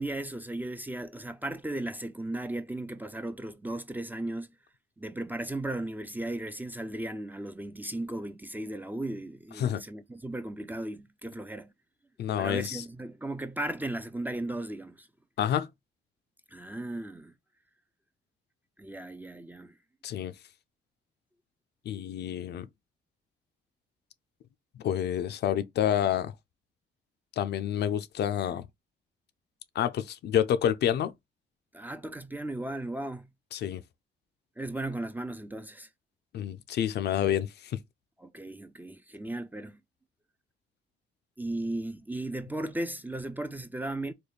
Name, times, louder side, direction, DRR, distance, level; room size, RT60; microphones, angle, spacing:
voice 1, 0.0-4.5 5.0-11.7 12.4-15.1 16.5-17.3 18.8-19.7 31.7-33.3 34.6-35.9 38.2-39.8 41.4-44.1, right 1 dB, 10° right, 0.3 m, -36 dB
voice 2, 12.2-12.8 15.4-15.7 20.0-20.3 21.9-22.7 24.8-26.3 27.4-28.7 29.8-31.1 33.5-33.8 36.3-37.8, left 10 dB, 60° left, 0.4 m, -28 dB
3.3 x 2.1 x 4.0 m
cardioid pair, 90°, 20 cm